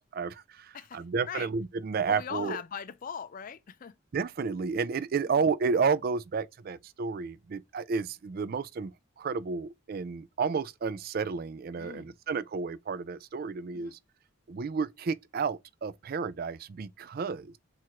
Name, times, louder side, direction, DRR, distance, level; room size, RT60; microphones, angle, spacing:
voice 1, 0.1-2.6 4.1-14.0 14.5-17.6, right 5 dB, 50° right, 0.4 m, -31 dB
voice 2, 0.7-1.5 2.1-4.0 5.3-5.4 11.8-12.1 13.7-14.0, left 7 dB, 45° left, 0.4 m, -40 dB
4.3 x 2.5 x 4.4 m
head